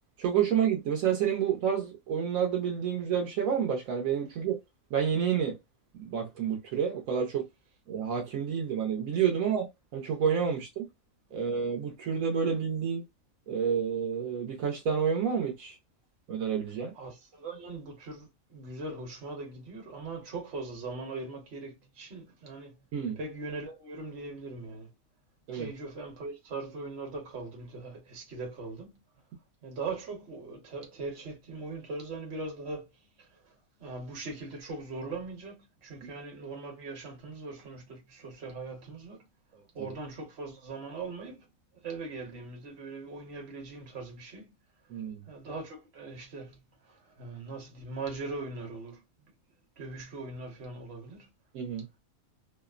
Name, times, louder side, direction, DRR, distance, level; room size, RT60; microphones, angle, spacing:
voice 1, 0.2-4.6 4.9-5.6 6.0-7.5 7.9-9.7 9.9-10.9 11.3-13.0 13.5-15.8 16.3-16.9 22.9-23.2 25.5-25.7 39.8-39.9 44.9-45.2 51.5-51.8, right 7 dB, 75° right, 1.1 m, -29 dB
voice 2, 16.9-22.8 23.2-24.9 25.5-29.0 29.6-32.9 33.2-33.5 33.8-39.2 39.7-41.5 41.7-44.5 45.3-49.0 49.8-51.3, right 3 dB, 50° right, 1.2 m, -40 dB
2.8 x 2.0 x 2.3 m
omnidirectional pair, 1.4 m